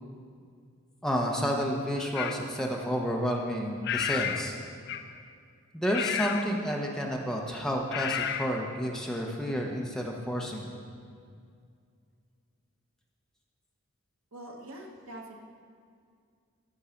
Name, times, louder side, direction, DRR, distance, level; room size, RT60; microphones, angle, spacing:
voice 1, 1.0-4.5 5.7-10.8, equal, 5° left, -1 dB, 0.9 m, -30 dB
sound 1, 2.1-2.4 3.8-4.5 4.9-5.2 5.9-6.5 7.9-8.5, left 8 dB, 50° left, 0.5 m, -31 dB
voice 2, 14.3-15.4, right 1 dB, 80° right, 1 dB, 1.3 m, -44 dB
13.5 x 5.5 x 5.8 m, 2.2 s
head